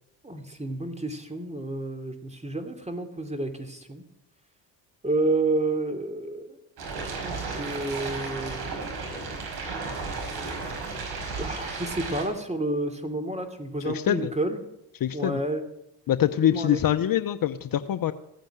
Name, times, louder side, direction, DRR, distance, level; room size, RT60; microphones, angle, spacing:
voice 1, 0.2-4.0 5.0-6.6 7.0-8.6 11.4-14.6 15.1-15.6 16.4-16.8, right 2 dB, 15° right, 7 dB, 3.0 m, -30 dB
sound 1, 6.8-12.2, right 4 dB, 65° right, 5.3 m, -34 dB
voice 2, 13.8-14.3 15.0-15.4 16.1-18.1, left 11 dB, 50° left, 11 dB, 0.9 m, -24 dB
16.0 x 9.1 x 9.3 m, 0.81 s
supercardioid pair, 70°, 43 cm